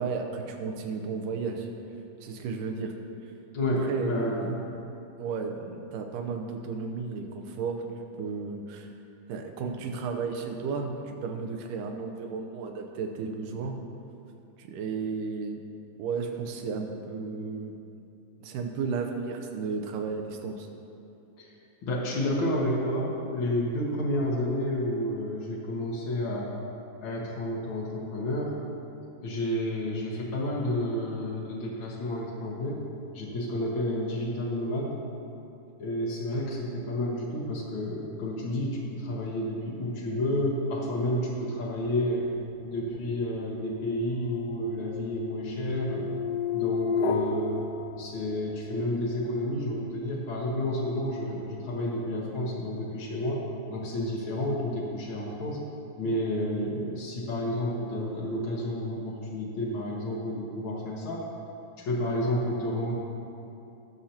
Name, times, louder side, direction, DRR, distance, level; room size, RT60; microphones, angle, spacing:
voice 1, 0.0-1.7 2.2-2.9 3.8-4.6 5.2-7.8 8.2-8.9 9.3-13.8 14.6-15.6 16.0-17.7 18.4-20.7 56.1-56.2, right 5 dB, 80° right, 4 dB, 2.3 m, -33 dB
voice 2, 3.5-4.6 21.4-21.5 21.8-26.5 27.0-28.6 29.2-32.9 33.1-35.0 35.8-42.3 42.6-46.1 46.5-47.6 48.0-53.4 53.7-55.7 56.0-61.2 61.8-62.9, left 1 dB, 65° left, -5 dB, 1.2 m, -30 dB
sound 1, 42.1-48.6, left 4 dB, 85° left, 2.4 m, -32 dB
18.5 x 6.5 x 2.9 m, 2.7 s
omnidirectional pair, 3.9 m